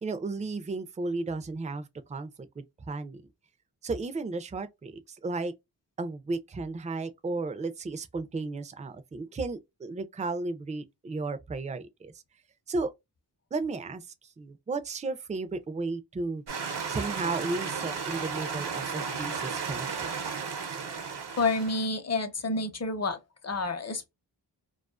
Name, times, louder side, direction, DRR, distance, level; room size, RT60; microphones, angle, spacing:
voice 1, 0.0-3.2 3.8-5.5 6.0-12.1 12.7-12.9 13.5-14.1 14.4-16.4 16.9-20.1, right 3 dB, 20° right, 0.4 m, -34 dB
sound 1, 16.5-21.9, right 5 dB, 75° right, 0.7 m, -34 dB
voice 2, 21.4-23.2 23.4-24.1, left 3 dB, 40° left, 0.7 m, -29 dB
2.4 x 2.3 x 2.3 m
wide cardioid pair, 85°, 41 cm